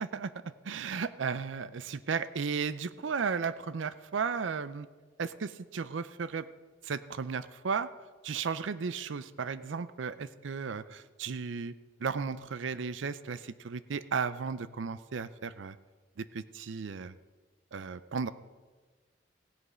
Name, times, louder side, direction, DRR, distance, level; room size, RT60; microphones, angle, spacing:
voice 1, 0.0-4.9 5.2-6.5 6.8-7.9 8.2-11.7 12.0-15.8 16.2-17.1 17.7-18.3, right 5 dB, 80° right, 15 dB, 0.5 m, -35 dB
16.0 x 8.0 x 5.6 m, 1.4 s
head